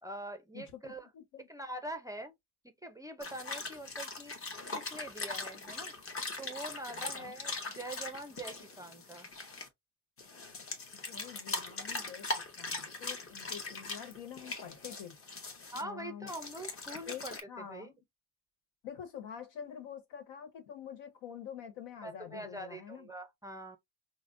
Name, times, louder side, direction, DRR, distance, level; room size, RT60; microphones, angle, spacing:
voice 1, 0.0-1.1 1.5-2.3 2.6-4.3 4.7-5.9 6.4-9.3 15.7-17.9 22.0-23.8, right 1 dB, 10° right, 0.4 m, -44 dB
voice 2, 0.5-1.5 6.9-7.3 10.9-12.3 12.6-15.2 15.8-16.3 17.1-18.0 18.8-23.1, left 8 dB, 85° left, 1.2 m, -47 dB
sound 1, 3.2-9.7 10.2-15.8 16.3-17.4, left 3 dB, 35° left, 0.9 m, -41 dB
4.9 x 2.1 x 2.5 m
cardioid pair, 110°, 40 cm